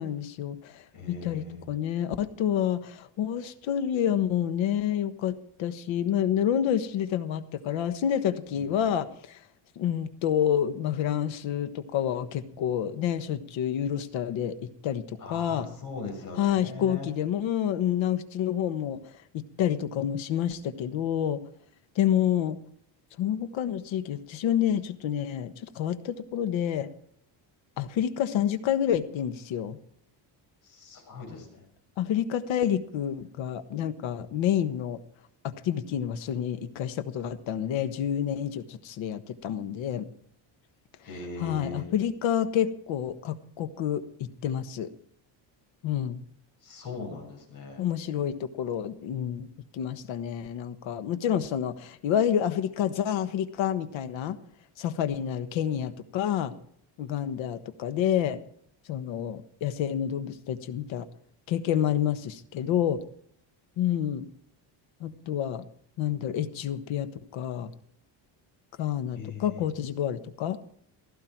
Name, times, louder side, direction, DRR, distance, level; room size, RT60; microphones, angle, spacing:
voice 1, 0.0-9.4 9.8-14.6 14.8-15.7 16.4-19.0 19.3-21.4 21.9-22.6 23.2-26.9 27.8-29.8 32.0-35.0 35.4-40.1 41.4-44.9 45.8-46.2 47.8-49.5 49.7-54.4 54.8-56.5 57.0-58.4 58.9-61.1 61.5-63.0 63.8-64.2 65.0-65.7 66.0-67.7 68.8-70.8, left 10 dB, 75° left, 11 dB, 1.4 m, -28 dB
voice 2, 0.9-1.6 8.5-8.9 12.5-12.7 15.2-17.1 30.6-31.6 41.0-41.9 46.6-47.8 68.8-68.9 69.1-69.7, left 4 dB, 45° left, 1 dB, 6.6 m, -40 dB
16.5 x 14.0 x 4.6 m, 0.65 s
cardioid pair, 150°, 47 cm